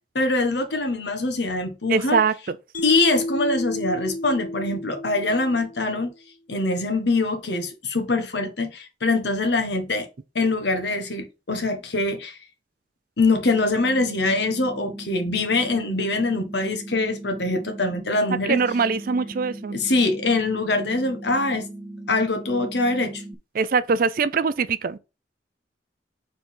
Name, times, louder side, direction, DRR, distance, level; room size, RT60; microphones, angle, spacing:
voice 1, 0.1-2.2 2.8-6.1 6.5-10.1 10.3-12.4 13.2-18.6 19.7-21.7 22.1-23.2, left 2 dB, 65° left, 1.3 m, -23 dB
voice 2, 1.9-2.6 18.5-19.8 23.5-25.0, right 5 dB, 50° right, 0.4 m, -22 dB
Mallet percussion, 2.7-6.0, left 1 dB, 45° left, 1.0 m, -31 dB
sound 1, 13.3-23.3, right 1 dB, 10° right, 0.7 m, -38 dB
4.8 x 3.9 x 5.4 m
head